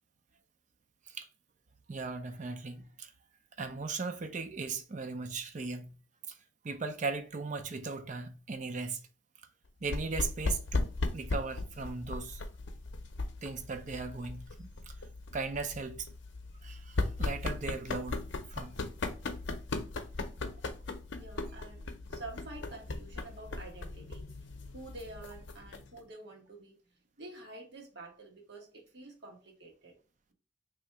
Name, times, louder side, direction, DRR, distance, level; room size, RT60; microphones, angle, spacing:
voice 1, 1.9-3.1 3.6-6.0 6.3-6.4 6.6-9.1 9.8-12.4 13.4-14.9 15.3-16.1 16.6-18.2 18.5-18.8, right 4 dB, 40° right, 0.5 m, -38 dB
sound 1, 9.8-26.0, left 2 dB, 80° left, 0.6 m, -38 dB
voice 2, 21.2-26.8 27.2-29.9, right 2 dB, 60° right, 1.3 m, -48 dB
3.1 x 2.8 x 4.5 m
head